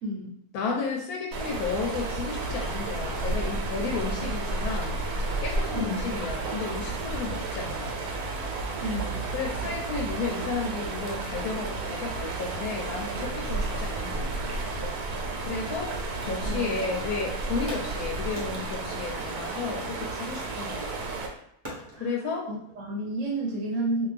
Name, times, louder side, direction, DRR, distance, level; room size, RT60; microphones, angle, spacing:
voice 1, 0.0-0.4 5.7-6.2 8.8-9.3 16.4-16.9 21.9-22.2 22.5-24.1, right 1 dB, 65° right, -3 dB, 1.0 m, -31 dB
voice 2, 0.5-5.0 5.4-8.0 9.3-14.4 15.5-15.9 16.2-21.0 22.0-22.5, left 5 dB, 90° left, 1 dB, 1.1 m, -33 dB
sound 1, 1.3-21.3, right 3 dB, 90° right, 1.1 m, -32 dB
sound 2, 1.6-9.0, left 1 dB, 70° left, 1.1 m, -49 dB
sound 3, 16.0-17.1 17.7-20.2 21.6-22.1, equal, 25° right, 0.6 m, -43 dB
2.6 x 2.3 x 3.2 m, 0.75 s
omnidirectional pair, 1.6 m